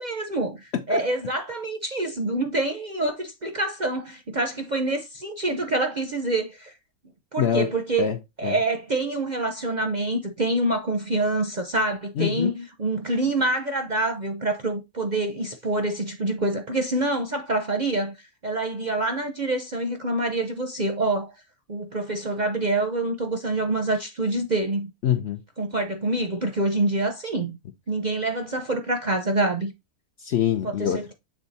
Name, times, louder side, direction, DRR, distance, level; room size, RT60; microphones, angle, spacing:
voice 1, 0.0-6.7 7.3-8.1 8.4-18.2 18.4-21.3 21.7-24.9 25.6-27.6 27.9-29.7 30.8-31.1, right 2 dB, 45° right, 0.6 m, -26 dB
voice 2, 7.4-8.6 12.2-12.6 25.0-25.4 30.2-31.0, left 9 dB, 60° left, 0.7 m, -25 dB
7.3 x 3.5 x 4.1 m
omnidirectional pair, 1.6 m